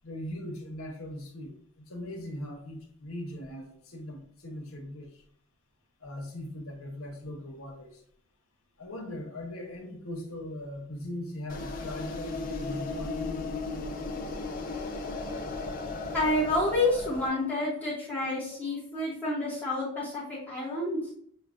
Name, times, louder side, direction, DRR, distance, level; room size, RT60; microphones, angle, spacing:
voice 1, 0.0-1.5 1.9-5.1 6.0-8.0 8.8-13.4, left 1 dB, 85° left, 2 dB, 1.0 m, -40 dB
sound 1, 11.5-17.3, left 3 dB, 40° left, 0.5 m, -35 dB
voice 2, 16.1-21.0, left 2 dB, 5° left, -9 dB, 0.9 m, -29 dB
6.4 x 2.2 x 2.4 m, 0.64 s
head